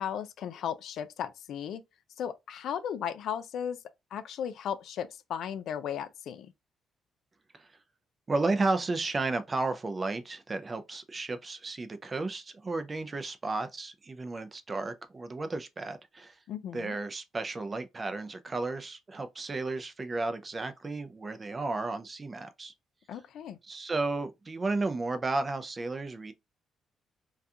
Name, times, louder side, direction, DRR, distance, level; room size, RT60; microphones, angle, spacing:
voice 1, 0.0-1.8 2.2-3.8 4.1-6.5 16.5-17.0 23.1-23.6, left 9 dB, 75° left, 0.3 m, -35 dB
voice 2, 8.3-16.4 16.7-22.7 23.6-26.3, right 3 dB, 30° right, 0.4 m, -33 dB
2.4 x 2.3 x 2.6 m
cardioid pair, 90°, 0 cm